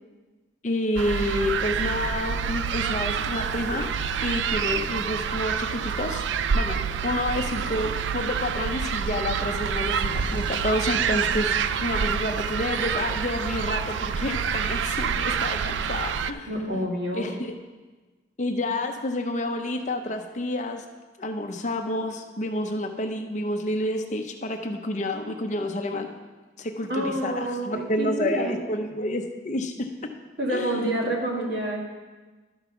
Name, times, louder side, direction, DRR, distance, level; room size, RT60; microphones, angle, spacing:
voice 1, 0.6-3.9 4.2-6.2 6.5-11.6 11.8-16.9 17.1-17.5 18.4-20.8 21.2-26.1 26.6-29.9 30.5-30.8, left 1 dB, 40° left, 5 dB, 0.6 m, -29 dB
sound 1, 1.0-16.3, right 7 dB, 80° right, 0.3 m, -27 dB
sound 2, 9.9-10.7, equal, 25° right, 0.9 m, -39 dB
voice 2, 16.5-17.3 26.9-28.6 30.4-31.8, right 1 dB, 60° right, -2 dB, 1.9 m, -28 dB
11.5 x 5.3 x 5.9 m, 1.3 s
head